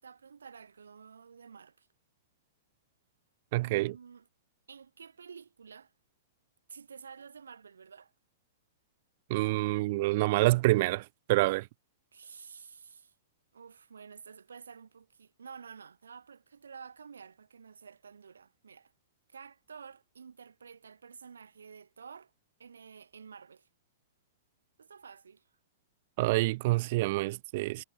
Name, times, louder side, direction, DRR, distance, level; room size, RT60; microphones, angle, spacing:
voice 1, 0.0-1.9 3.6-4.2 4.7-5.9 6.7-8.1 12.1-13.1 13.5-18.9 19.3-22.3 22.6-23.7 24.8-25.4, right 6 dB, 70° right, 4.7 m, -50 dB
voice 2, 3.5-3.9 9.3-11.7 26.2-27.8, right 20 dB, 45° right, 1.1 m, -27 dB
figure-of-eight pair, 105°, 0 cm